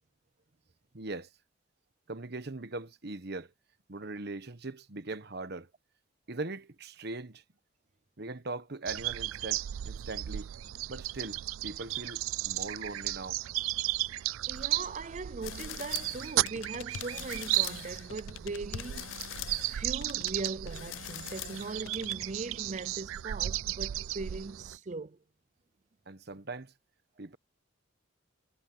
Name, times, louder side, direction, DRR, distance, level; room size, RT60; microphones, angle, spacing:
voice 1, 0.9-1.3 2.1-3.5 3.9-5.7 6.3-7.4 8.2-10.5 10.9-13.4 26.1-26.7 27.2-27.4, right 2 dB, 55° right, 1.2 m, -40 dB
sound 1, 8.9-24.8, right 15 dB, 90° right, 0.4 m, -35 dB
voice 2, 14.5-19.1 19.7-25.2, right 3 dB, 35° right, 0.5 m, -40 dB
sound 2, 15.4-22.3, left 11 dB, 75° left, 0.4 m, -43 dB
head